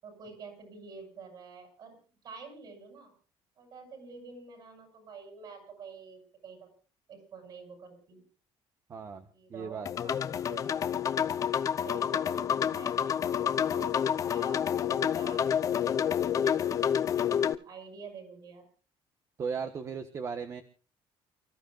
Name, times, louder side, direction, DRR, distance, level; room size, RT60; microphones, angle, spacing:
voice 1, 0.0-2.0 2.2-3.1 3.6-6.7 7.1-8.2 9.3-10.7 11.0-11.5 11.8-15.5 16.0-16.8 17.3-18.7, right 5 dB, 45° right, 5 dB, 7.9 m, -48 dB
voice 2, 8.9-9.2 9.5-9.9 19.4-20.6, right 6 dB, 30° right, 8 dB, 1.3 m, -36 dB
sound 1, 9.9-17.6, left 8 dB, 35° left, 0.7 m, -29 dB
29.5 x 14.5 x 2.5 m, 0.39 s
cardioid pair, 175°, 10 cm